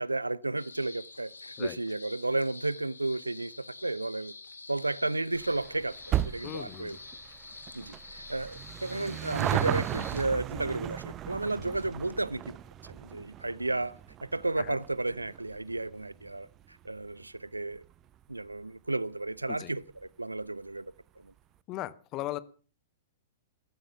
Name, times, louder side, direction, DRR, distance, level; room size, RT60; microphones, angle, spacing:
voice 1, 0.0-4.3 4.7-7.0 7.7-12.6 12.9-17.8 18.3-20.9 21.2-21.3, right 2 dB, 85° right, 0.7 m, -33 dB
sound 1, 0.6-10.2, left 3 dB, 75° left, 2.4 m, -48 dB
sound 2, 5.3-18.1 18.4-18.5 19.4-19.5 19.7-19.8 20.0-20.1, right 11 dB, 25° right, 0.9 m, -36 dB
voice 2, 6.4-7.0 14.6-14.8 19.5-19.7 21.7-22.4, left 15 dB, 30° left, 1.1 m, -38 dB
14.5 x 14.5 x 5.8 m
figure-of-eight pair, 105°, 0 cm